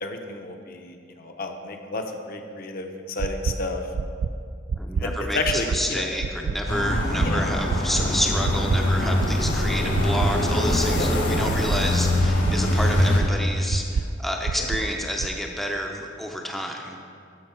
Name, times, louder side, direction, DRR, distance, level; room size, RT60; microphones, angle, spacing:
voice 1, 0.0-4.1 5.0-6.1 7.2-7.5 10.9-11.1 14.6-14.7, left 2 dB, 50° left, 4 dB, 0.7 m, -31 dB
sound 1, 3.2-3.5 3.9-4.3 4.7-5.0 5.4-5.8 6.2-6.5 6.9-7.3 7.7-8.1 8.4-8.8 9.2-9.5 9.9-10.3 10.7-11.0 11.4-11.8 12.2-12.5 12.9-13.3 13.7-14.0 14.4-14.8 15.2-15.3, right 5 dB, 55° right, 0.3 m, -26 dB
voice 2, 4.8-17.0, equal, ahead, 1 dB, 0.5 m, -29 dB
sound 2, 6.7-13.2, left 1 dB, 70° left, 1.7 m, -23 dB
12.5 x 5.5 x 4.4 m, 2.3 s
head